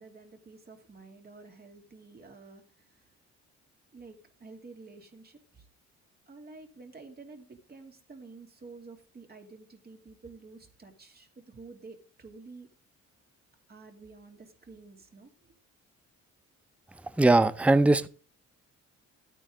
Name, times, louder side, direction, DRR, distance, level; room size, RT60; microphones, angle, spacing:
voice 1, 0.0-2.6 3.9-5.6 6.3-12.7 13.7-15.3, right 3 dB, 30° right, 2.5 m, -50 dB
voice 2, 17.2-18.1, right 2 dB, 5° right, 0.6 m, -20 dB
12.0 x 9.1 x 3.7 m
cardioid pair, 90°, 30 cm